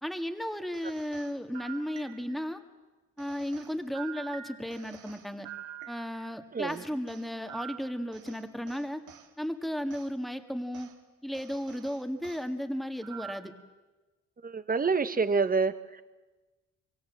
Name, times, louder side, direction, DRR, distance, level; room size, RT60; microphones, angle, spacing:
voice 1, 0.0-2.6 3.2-5.5 5.9-9.0 9.4-10.9 11.2-13.5, equal, ahead, 7 dB, 1.8 m, -34 dB
sound 1, 0.7-2.5 3.2-6.3 6.7-9.3 9.9-10.1 10.7-10.9 11.3-12.5 13.0-13.6, right 9 dB, 90° right, 2.1 m, -47 dB
voice 2, 14.4-16.0, right 4 dB, 30° right, 12 dB, 1.2 m, -27 dB
25.0 x 23.5 x 7.4 m, 1.2 s
cardioid pair, 90°, 30 cm